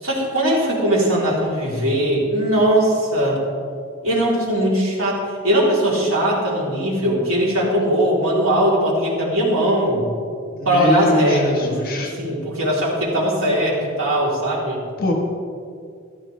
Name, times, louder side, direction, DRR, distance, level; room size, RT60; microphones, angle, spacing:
voice 1, 0.0-3.4 4.0-10.0 10.7-11.7 12.0-14.8, right 1 dB, 85° right, -4 dB, 3.5 m, -20 dB
voice 2, 10.6-12.1 15.0-15.1, left 1 dB, 45° left, 1 dB, 1.4 m, -22 dB
15.0 x 12.5 x 3.3 m, 2.3 s
head